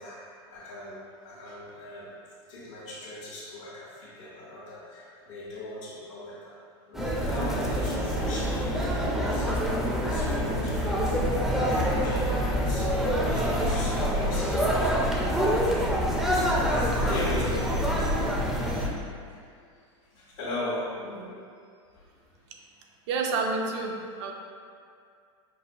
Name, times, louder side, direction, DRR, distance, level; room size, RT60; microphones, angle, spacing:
voice 1, 0.0-2.2 2.5-6.6 6.9-14.8 15.5-16.3 16.6-17.8 19.2-19.4 20.1-21.4 22.0-22.1, left 1 dB, 75° left, -9 dB, 1.0 m, -39 dB
sound 1, 6.9-18.9, equal, ahead, 0.4 m, -26 dB
voice 2, 23.1-23.9 24.2-24.3, right 3 dB, 65° right, 1 dB, 0.5 m, -28 dB
5.4 x 2.2 x 2.6 m, 2.3 s
supercardioid pair, 120°, 16 cm